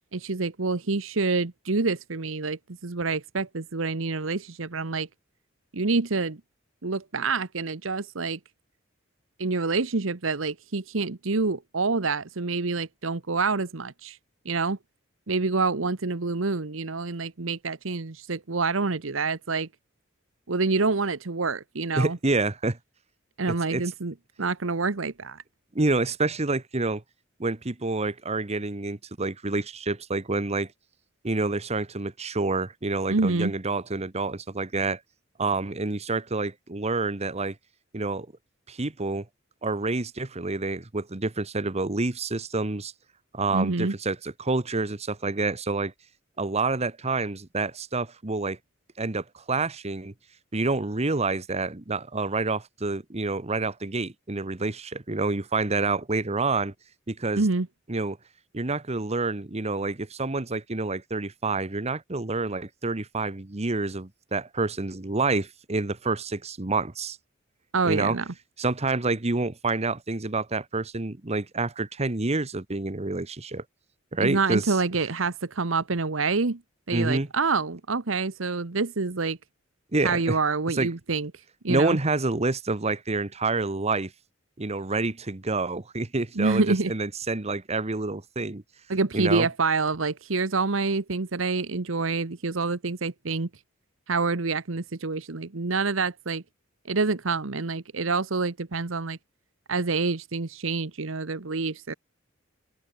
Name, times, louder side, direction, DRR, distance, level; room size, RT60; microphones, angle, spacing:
voice 1, 0.1-5.1 5.7-6.4 6.8-8.4 9.4-14.2 14.4-14.8 15.3-19.7 20.5-22.2 23.4-25.4 33.1-33.5 43.5-43.9 57.4-57.7 67.7-68.2 74.2-76.6 76.9-79.4 80.0-81.3 81.6-82.0 86.4-86.9 88.9-93.5 94.1-96.4 96.9-99.2 99.7-101.9, right 3 dB, 75° right, 1.1 m, -27 dB
voice 2, 21.9-22.8 23.5-23.8 25.7-27.0 27.4-30.7 31.2-35.0 35.4-37.6 37.9-38.3 38.7-39.3 39.6-42.9 43.3-45.9 46.4-48.6 49.0-50.1 50.5-56.7 57.1-57.4 57.9-58.2 58.5-67.2 67.8-68.2 68.6-73.6 74.1-74.7 76.9-77.3 79.9-80.4 80.7-80.9 81.7-84.1 84.6-88.6 89.1-89.5, right 3 dB, 35° right, 1.2 m, -28 dB
open air
head